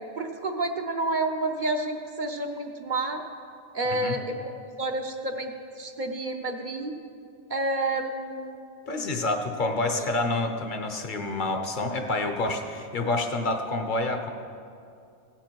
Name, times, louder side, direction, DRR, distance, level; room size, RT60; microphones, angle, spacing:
voice 1, 0.2-3.2 3.7-4.4 4.8-5.5 5.8-6.9 7.5-8.6 9.9-10.1, right 2 dB, 50° right, 4 dB, 0.9 m, -29 dB
voice 2, 8.9-14.3, left 2 dB, 50° left, 5 dB, 1.0 m, -28 dB
16.0 x 10.0 x 4.6 m, 2.5 s
omnidirectional pair, 1.2 m